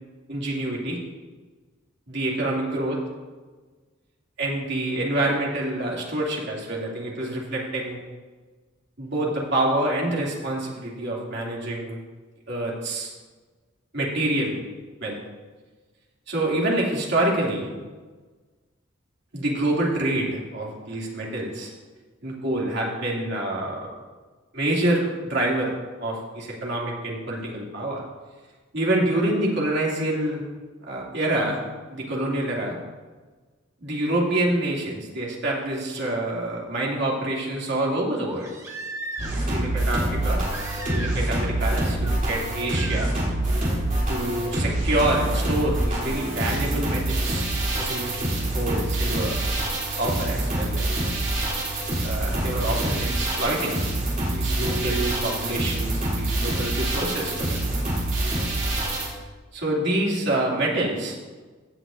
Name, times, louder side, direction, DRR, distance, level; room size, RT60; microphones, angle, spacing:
voice 1, 0.3-1.0 2.1-3.0 4.4-8.0 9.0-12.0 12.5-13.1 13.9-14.6 15.0-15.2 16.3-17.7 19.3-21.7 22.2-23.9 24.5-25.7 26.0-28.0 28.7-30.4 30.8-31.6 31.9-32.8 33.8-38.5 39.5-40.4 40.9-43.1 44.1-47.5 47.7-49.5 50.0-51.5 52.0-53.8 54.3-57.3 59.5-61.2, right 1 dB, 60° right, -4 dB, 2.6 m, -27 dB
Crying sobbing, 38.2-39.6 40.5-41.3 41.6-42.1 42.7-43.1 44.7-44.8, right 2 dB, 15° right, 1.0 m, -37 dB
sound 1, 39.2-59.1, right 1 dB, 40° right, 3.2 m, -26 dB
15.5 x 8.2 x 2.6 m, 1.3 s
head